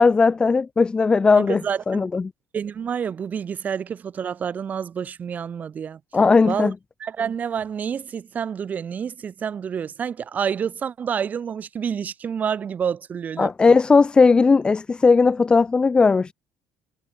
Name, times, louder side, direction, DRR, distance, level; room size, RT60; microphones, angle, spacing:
voice 1, 0.0-1.6 1.9-2.3 6.1-6.7 13.4-16.3, left 4 dB, 15° left, 0.9 m, -17 dB
voice 2, 1.3-2.1 2.5-6.0 6.4-6.7 7.0-13.8, right 7 dB, 30° right, 4.6 m, -28 dB
cardioid pair, 155°, 5 cm